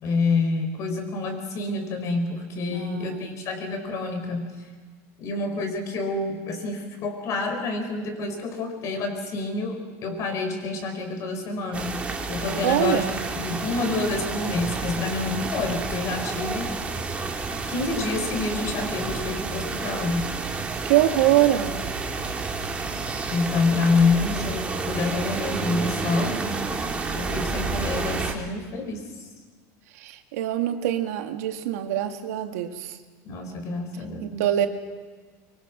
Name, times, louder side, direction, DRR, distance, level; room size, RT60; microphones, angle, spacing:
voice 1, 0.0-4.5 5.2-11.9 12.3-16.8 17.7-20.3 23.3-26.4 27.1-29.0 33.2-34.6, left 3 dB, 40° left, 5 dB, 4.7 m, -27 dB
voice 2, 2.7-3.3 12.6-13.1 20.8-21.8 30.0-33.0 34.2-34.7, right 13 dB, 85° right, 6 dB, 1.9 m, -24 dB
sound 1, 11.7-28.3, right 4 dB, 15° right, 2.2 m, -30 dB
24.0 x 23.5 x 6.2 m, 1.5 s
supercardioid pair, 150°, 8 cm